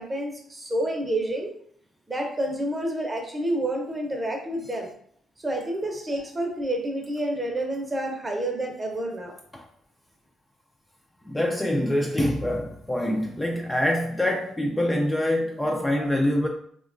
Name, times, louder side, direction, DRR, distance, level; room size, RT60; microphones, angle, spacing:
voice 1, 0.0-1.5 2.1-4.9 5.4-9.4, right 1 dB, 20° right, 0.6 m, -29 dB
voice 2, 11.2-16.5, left 1 dB, 10° left, 0.3 m, -25 dB
2.9 x 2.2 x 2.5 m
cardioid pair, 90°, 0 cm